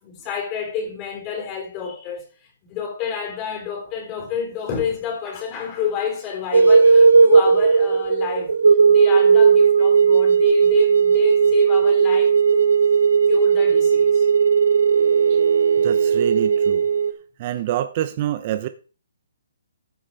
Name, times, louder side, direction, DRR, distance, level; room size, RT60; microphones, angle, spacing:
voice 1, 0.0-8.5 8.9-12.8 13.3-14.3, left 7 dB, 25° left, 3.8 m, -29 dB
sound 1, 6.5-17.1, right 6 dB, 85° right, 1.5 m, -16 dB
voice 2, 15.8-16.9 17.4-18.7, right 12 dB, 35° right, 0.9 m, -26 dB
14.5 x 8.5 x 4.1 m
hypercardioid pair, 150°, 0 cm